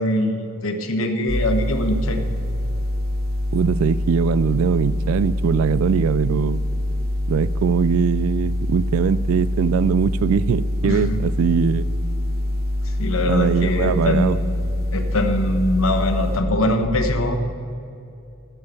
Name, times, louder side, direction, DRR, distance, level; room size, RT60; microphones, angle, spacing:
voice 1, 0.0-2.2 10.8-11.2 12.8-14.4 14.9-17.4, left 1 dB, 65° left, 5 dB, 1.1 m, -22 dB
sound 1, 1.3-16.4, left 1 dB, 45° right, 1.1 m, -24 dB
voice 2, 3.5-6.6 7.3-11.9 13.3-14.4, right 6 dB, 70° right, 17 dB, 0.3 m, -21 dB
12.0 x 5.5 x 8.1 m, 2.7 s
head